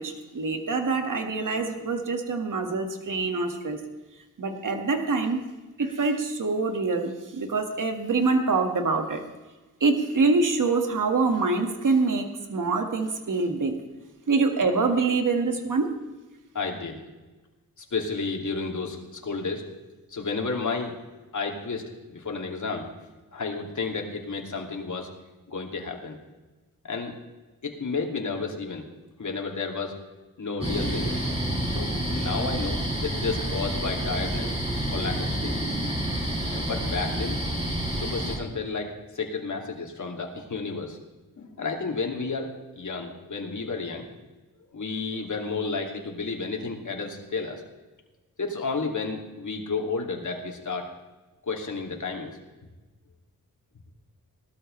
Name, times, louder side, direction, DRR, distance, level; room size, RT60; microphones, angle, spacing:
voice 1, 0.0-3.8 4.4-5.5 5.8-9.2 9.8-13.8 14.3-15.9, right 3 dB, 60° right, 5 dB, 1.9 m, -25 dB
voice 2, 16.5-17.0 17.8-19.6 20.1-21.0 21.3-22.9 23.3-25.1 25.5-26.2 26.8-27.1 27.6-28.9 29.2-29.9 30.4-31.2 31.7-34.5 34.9-35.5 36.5-37.4 37.9-41.0 41.4-44.1 44.7-47.6 48.4-50.9 51.4-52.4, left 4 dB, 55° left, 2 dB, 2.6 m, -32 dB
sound 1, 30.6-38.4, right 1 dB, 15° right, 4.9 m, -28 dB
18.5 x 13.0 x 3.3 m, 1.2 s
cardioid pair, 65°, 35 cm